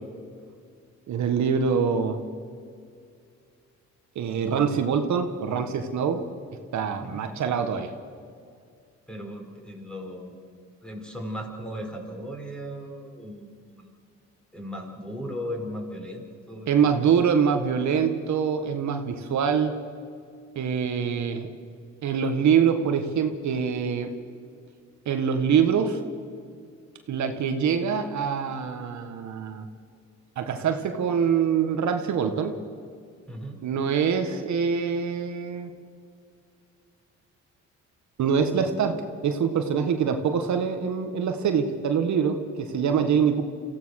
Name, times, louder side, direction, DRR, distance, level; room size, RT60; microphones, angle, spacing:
voice 1, 1.1-2.2 4.1-6.2 6.7-7.9 16.7-19.7 20.5-21.5 22.0-24.1 25.0-26.0 27.1-29.6 30.4-32.6 33.6-35.7 38.2-43.4, right 7 dB, 70° right, 6 dB, 1.6 m, -24 dB
voice 2, 9.1-10.3 10.8-13.5 13.7-13.9 14.5-16.9 33.3-33.6, equal, 5° left, 2 dB, 4.5 m, -37 dB
26.0 x 15.5 x 6.5 m, 2.3 s
cardioid pair, 90°, 30 cm